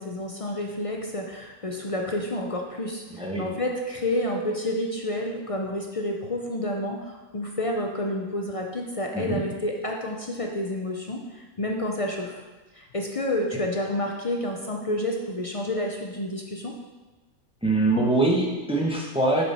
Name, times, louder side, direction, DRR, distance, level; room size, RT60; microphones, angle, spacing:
voice 1, 0.0-12.4 12.7-16.8, left 1 dB, 50° left, 1 dB, 0.4 m, -29 dB
voice 2, 3.1-3.4 9.1-9.4 17.6-19.4, right 2 dB, 5° right, -2 dB, 1.0 m, -23 dB
7.1 x 6.2 x 4.3 m, 1.2 s
omnidirectional pair, 1.5 m